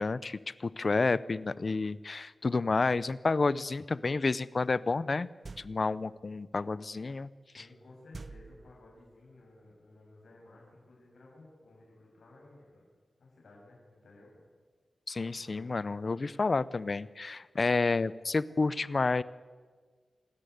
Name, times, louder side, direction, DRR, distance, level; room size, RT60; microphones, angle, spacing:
voice 1, 0.0-5.3 5.6-7.3 7.6-7.7 15.1-19.2, left 3 dB, 40° left, 18 dB, 0.6 m, -30 dB
sound 1, 5.4-6.1 8.1-9.1, right 3 dB, 40° right, 0.7 m, -47 dB
voice 2, 7.6-12.8 13.2-14.4, left 2 dB, 70° left, -3 dB, 7.1 m, -56 dB
27.0 x 13.5 x 9.4 m, 1.5 s
wide cardioid pair, 135°, 0 cm